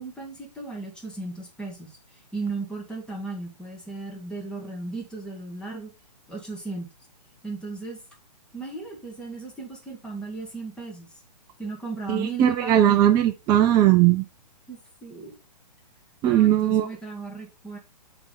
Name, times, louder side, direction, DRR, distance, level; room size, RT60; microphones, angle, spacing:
voice 1, 0.0-5.9 6.3-6.9 7.4-8.0 8.5-11.1 11.6-13.1 14.7-15.4 16.3-17.8, right 3 dB, 5° left, 1.8 m, -36 dB
voice 2, 12.1-14.2 16.2-16.9, right 12 dB, 15° right, 0.4 m, -19 dB
7.8 x 3.5 x 4.0 m
hypercardioid pair, 140°, 21 cm